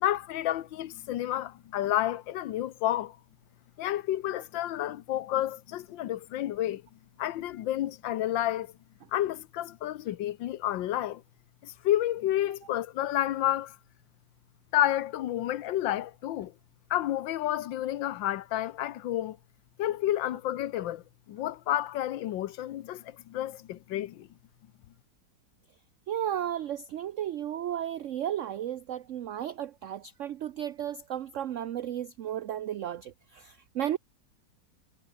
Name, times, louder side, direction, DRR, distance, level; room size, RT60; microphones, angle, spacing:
voice 1, 0.0-3.2 3.8-6.8 7.2-8.7 9.1-11.2 11.6-13.8 14.7-16.5 16.9-19.4 19.8-21.0 21.3-24.3, left 13 dB, 85° left, 1.6 m, -30 dB
voice 2, 26.1-34.0, right 11 dB, 65° right, 0.7 m, -34 dB
omnidirectional pair, 2.0 m